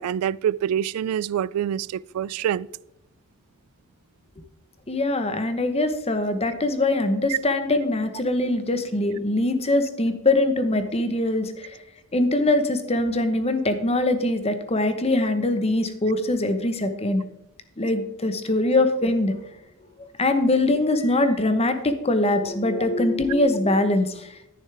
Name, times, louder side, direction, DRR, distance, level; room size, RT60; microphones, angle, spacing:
voice 1, 0.0-2.7 7.3-7.4, right 10 dB, 85° right, 0.3 m, -26 dB
voice 2, 4.9-11.8 12.1-17.2 17.8-19.3 20.0-24.3, left 2 dB, 30° left, 1.0 m, -22 dB
10.5 x 9.9 x 3.4 m
head